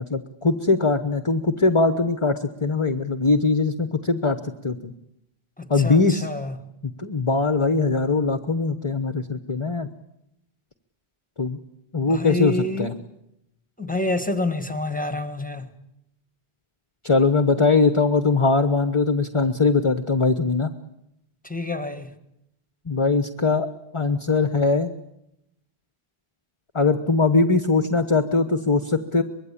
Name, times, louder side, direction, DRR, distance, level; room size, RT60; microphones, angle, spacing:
voice 1, 0.0-4.4 4.6-4.9 5.7-6.3 6.8-9.9 11.4-11.6 11.9-12.9 17.0-20.7 22.8-23.7 23.9-24.9 26.7-29.2, left 3 dB, 30° left, 1.0 m, -21 dB
voice 2, 5.6-6.6 12.1-12.9 13.8-15.7 21.4-22.1, left 2 dB, 10° left, 1.6 m, -28 dB
24.5 x 22.0 x 8.6 m
omnidirectional pair, 1.0 m